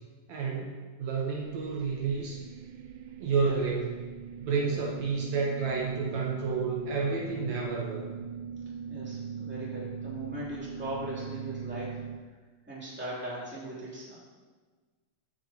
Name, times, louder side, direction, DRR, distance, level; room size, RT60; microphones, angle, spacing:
voice 1, 0.3-2.4 3.2-3.9 4.4-8.1, right 4 dB, 70° right, -3 dB, 2.2 m, -30 dB
sound 1, 1.4-12.2, right 7 dB, 85° right, 2.1 m, -41 dB
voice 2, 3.3-3.7 4.6-4.9 8.9-12.0 12.7-14.1, right 1 dB, 5° right, -8 dB, 2.4 m, -39 dB
14.0 x 6.7 x 2.9 m, 1.4 s
omnidirectional pair, 3.5 m